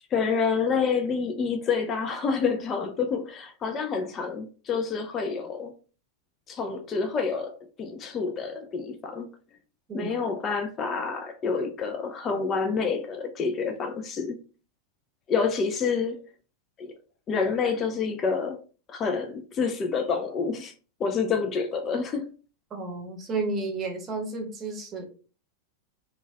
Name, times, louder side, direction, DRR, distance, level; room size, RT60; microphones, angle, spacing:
voice 1, 0.1-5.7 6.5-9.3 9.9-14.4 15.3-16.2 16.8-16.9 17.3-18.6 18.9-20.7 21.0-22.3, left 5 dB, 25° left, 0.3 m, -28 dB
voice 2, 22.7-25.0, right 3 dB, 25° right, 0.8 m, -32 dB
3.0 x 2.2 x 2.2 m
figure-of-eight pair, 90°, 0 cm